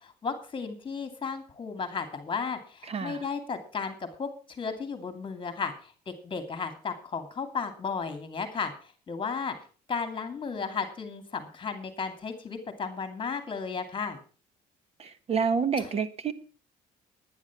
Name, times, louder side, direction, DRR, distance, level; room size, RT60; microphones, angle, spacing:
voice 1, 0.0-9.6 9.9-14.2 15.8-15.9, left 5 dB, 30° left, 2.5 m, -34 dB
voice 2, 2.9-3.3 15.0-16.3, right 6 dB, 35° right, 1.3 m, -28 dB
10.5 x 10.5 x 6.0 m
cardioid pair, 110°, 17 cm